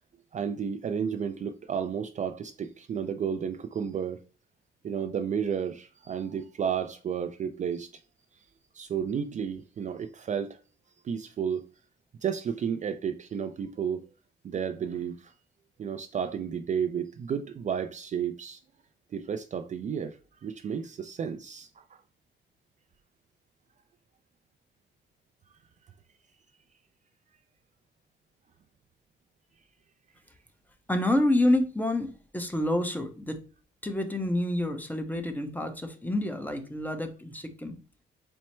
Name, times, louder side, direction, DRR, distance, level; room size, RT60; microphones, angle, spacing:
voice 1, 0.3-4.2 4.8-7.9 8.7-10.6 11.0-11.6 12.2-14.0 14.4-15.3 15.8-18.6 19.1-22.0, right 7 dB, 40° right, 0.4 m, -32 dB
voice 2, 30.9-33.4 33.8-37.8, left 1 dB, 10° left, 0.7 m, -28 dB
4.3 x 2.0 x 4.3 m
cardioid pair, 90°, 20 cm